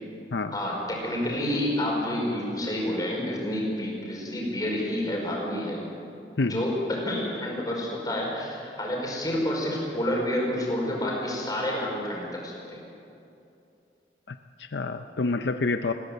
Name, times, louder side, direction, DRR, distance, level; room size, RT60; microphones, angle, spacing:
voice 1, 0.5-5.8 6.5-12.8, left 1 dB, 20° left, -2 dB, 5.1 m, -29 dB
voice 2, 14.3-15.9, left 3 dB, 75° left, 8 dB, 0.6 m, -28 dB
20.0 x 16.5 x 8.1 m, 2.7 s
head